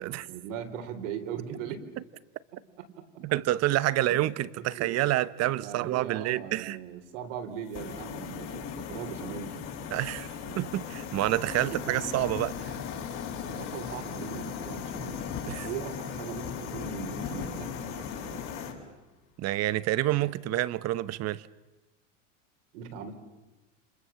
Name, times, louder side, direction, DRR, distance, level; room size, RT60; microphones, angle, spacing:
voice 1, 0.0-1.9 2.5-3.1 3.9-4.2 4.6-5.1 5.4-9.6 10.5-10.7 11.5-12.1 13.3-15.2 15.5-18.5 22.7-23.2, right 8 dB, 75° right, 4.0 m, -40 dB
voice 2, 3.2-6.8 9.9-10.3 10.6-12.7 15.4-15.7 19.4-21.5, right 15 dB, 40° right, 1.0 m, -28 dB
sound 1, 7.7-18.7, left 7 dB, 50° left, 7.1 m, -37 dB
29.5 x 27.0 x 7.2 m
supercardioid pair, 120°, 38 cm